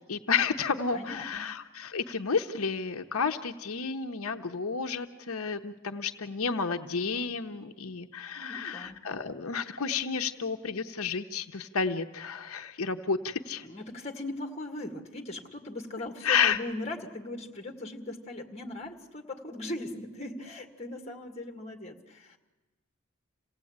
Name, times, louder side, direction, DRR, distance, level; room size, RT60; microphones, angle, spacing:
voice 1, 0.1-13.7 16.2-16.6, left 5 dB, 85° left, 6 dB, 0.9 m, -31 dB
voice 2, 0.9-1.5 8.3-9.0 13.4-22.4, left 1 dB, 30° left, 3 dB, 1.9 m, -39 dB
27.5 x 17.0 x 8.7 m, 1.2 s
head